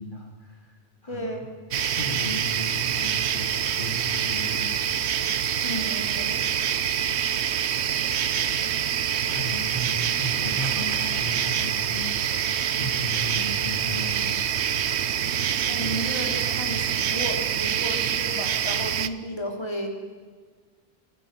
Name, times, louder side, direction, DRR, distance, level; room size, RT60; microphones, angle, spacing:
voice 1, 0.0-1.4 2.0-4.7 6.3-6.5 9.3-14.5, left 1 dB, 50° left, 1 dB, 2.7 m, -35 dB
voice 2, 1.1-1.5 5.6-6.4 15.7-19.9, equal, 25° left, 2 dB, 3.3 m, -33 dB
sound 1, 1.7-19.1, right 9 dB, 90° right, 1.1 m, -26 dB
23.0 x 19.0 x 7.4 m, 1.5 s
omnidirectional pair, 1.1 m